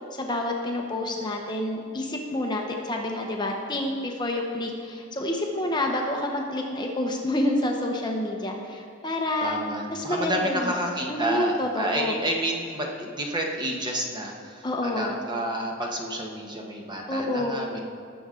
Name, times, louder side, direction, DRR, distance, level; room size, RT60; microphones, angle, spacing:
voice 1, 0.1-9.6 9.9-10.7 11.1-12.1 14.6-15.2 17.1-17.6, left 1 dB, 20° left, 1 dB, 0.9 m, -28 dB
voice 2, 9.4-17.8, right 1 dB, 20° right, 0 dB, 1.2 m, -30 dB
18.0 x 6.9 x 3.8 m, 2.4 s
head